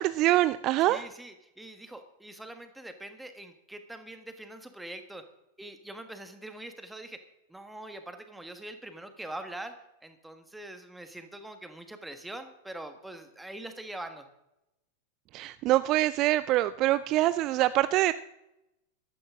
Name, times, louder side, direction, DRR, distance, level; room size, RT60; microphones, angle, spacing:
voice 1, 0.0-1.0 15.3-18.1, right 15 dB, 40° right, 15 dB, 0.4 m, -24 dB
voice 2, 0.9-5.2 5.6-9.7 10.0-14.3, right 1 dB, 5° right, 8 dB, 1.5 m, -43 dB
15.0 x 12.5 x 3.7 m, 0.88 s
figure-of-eight pair, 90°, 0 cm